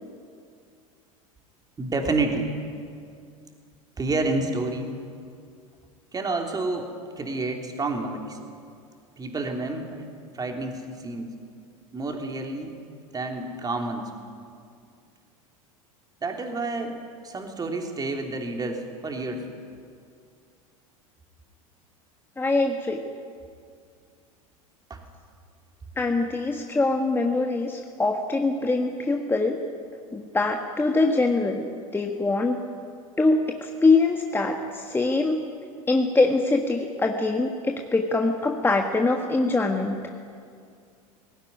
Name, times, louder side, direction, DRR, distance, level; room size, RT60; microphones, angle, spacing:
voice 1, 1.8-2.5 4.0-4.9 6.1-8.4 9.2-10.1 10.3-11.3 11.9-12.8 13.1-14.1 16.2-17.0 17.2-19.5 24.9-25.0, right 2 dB, 20° right, 3 dB, 3.3 m, -29 dB
voice 2, 22.4-23.0 26.0-29.6 30.1-31.6 31.9-32.6 33.2-35.4 35.9-39.9, left 3 dB, 10° left, 2 dB, 1.6 m, -23 dB
18.5 x 17.0 x 10.0 m, 2.3 s
hypercardioid pair, 85°, 18 cm